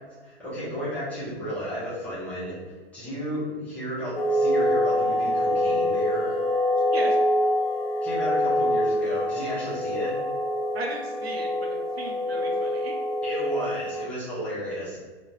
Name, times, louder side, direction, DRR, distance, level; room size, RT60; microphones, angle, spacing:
voice 1, 0.2-2.6 2.9-6.4 8.0-10.2 13.2-15.0, equal, 5° left, -11 dB, 0.4 m, -33 dB
sound 1, 4.2-14.0, left 1 dB, 60° left, 0.5 m, -25 dB
voice 2, 10.7-13.0, right 2 dB, 65° right, 1 dB, 0.5 m, -36 dB
2.4 x 2.1 x 2.8 m, 1.4 s
figure-of-eight pair, 110°, 33 cm